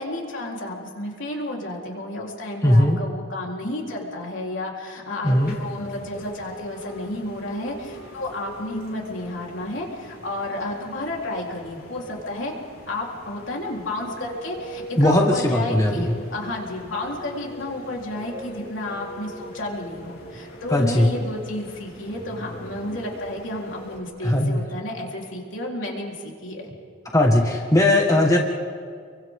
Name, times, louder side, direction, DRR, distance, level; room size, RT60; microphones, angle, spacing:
voice 1, 0.0-12.5 12.9-26.7, left 1 dB, 70° left, -2 dB, 4.0 m, -31 dB
voice 2, 2.6-3.0 5.2-5.5 15.0-16.1 20.7-21.1 24.2-24.6 27.1-28.4, left 1 dB, 15° left, 0 dB, 1.7 m, -18 dB
sound 1, 5.2-24.0, equal, 50° left, 3.8 m, -41 dB
30.0 x 24.0 x 3.8 m, 2.1 s
head